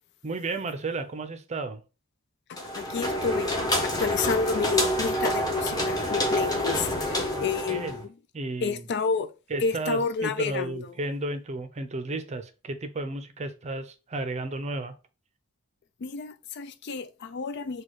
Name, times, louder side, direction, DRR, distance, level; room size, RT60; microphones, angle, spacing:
voice 1, 0.2-1.8 7.3-7.4 7.7-8.0 8.3-8.8 9.5-15.0, right 2 dB, 35° right, 0.6 m, -33 dB
voice 2, 2.5-8.1 8.6-9.3 9.6-11.0 16.0-17.8, left 5 dB, 55° left, 0.4 m, -30 dB
sound 1, 2.6-8.0, equal, 20° left, 1.1 m, -27 dB
4.2 x 2.3 x 4.7 m
head